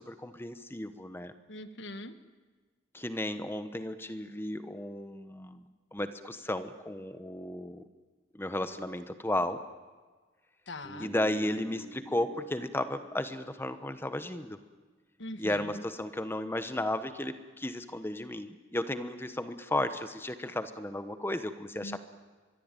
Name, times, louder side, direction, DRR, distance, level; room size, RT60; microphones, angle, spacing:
voice 1, 0.0-1.3 2.9-5.6 5.9-7.8 8.3-9.6 11.0-14.6 15.4-21.9, left 1 dB, 10° left, 11 dB, 1.1 m, -34 dB
voice 2, 1.5-2.2 10.7-11.1 15.2-15.8 21.8-22.0, left 1 dB, 65° left, 11 dB, 1.5 m, -42 dB
Bass guitar, 10.8-14.8, right 3 dB, 5° right, 6.3 m, -50 dB
25.0 x 22.0 x 9.1 m, 1.4 s
head